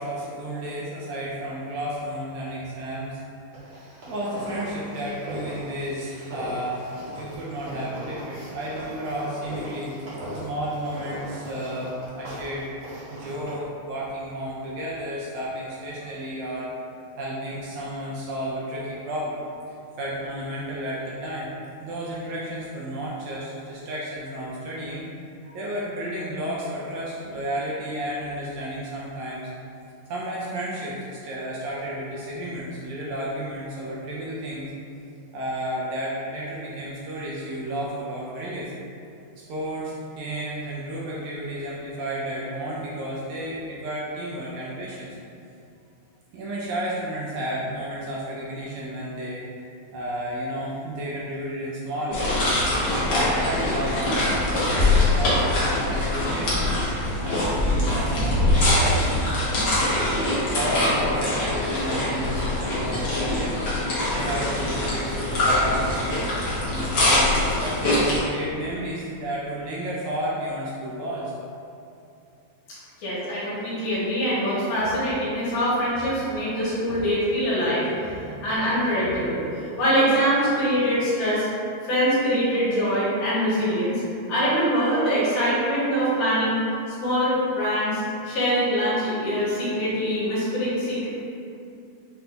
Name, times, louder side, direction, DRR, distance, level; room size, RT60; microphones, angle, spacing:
voice 1, 0.0-3.2 4.1-9.9 10.4-12.7 13.1-16.7 17.2-19.5 20.0-21.5 21.8-25.1 25.5-29.5 30.1-34.7 35.3-38.7 39.5-45.2 46.3-49.4 49.9-52.3 52.8-54.3 54.7-56.8 57.2-59.4 60.5-63.7 64.1-66.2 66.6-71.3 72.7-72.9 74.8-75.0 75.9-76.1 76.9-77.0 79.0-79.2, right 1 dB, 75° right, -5 dB, 1.8 m, -32 dB
sound 1, 3.5-13.5, equal, 55° right, 1.5 m, -39 dB
sound 2, 52.1-68.2, left 1 dB, 90° left, 0.9 m, -23 dB
voice 2, 73.0-79.4 79.8-81.5 81.8-84.0 84.3-86.6 87.0-91.1, equal, 65° left, -9 dB, 2.3 m, -23 dB
5.9 x 2.6 x 3.3 m, 2.6 s
omnidirectional pair, 3.6 m